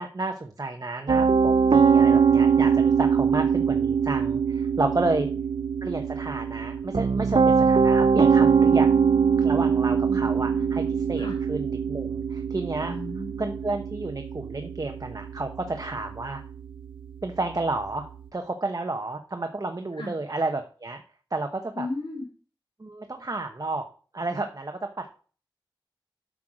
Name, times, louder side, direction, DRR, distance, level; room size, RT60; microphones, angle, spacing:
voice 1, 0.0-5.3 5.8-8.9 9.4-12.9 13.4-16.4 17.2-18.1 18.3-21.0 21.3-21.9 22.8-23.8 24.1-25.1, right 2 dB, 45° right, 5 dB, 0.9 m, -31 dB
Piano, 1.1-18.2, right 6 dB, 80° right, 0.6 m, -23 dB
voice 2, 10.1-10.7 11.2-11.4 12.8-13.4 20.0-20.1 21.7-22.3, left 2 dB, 75° left, -3 dB, 3.3 m, -35 dB
8.1 x 6.2 x 5.0 m, 0.40 s
wide cardioid pair, 55°, 9 cm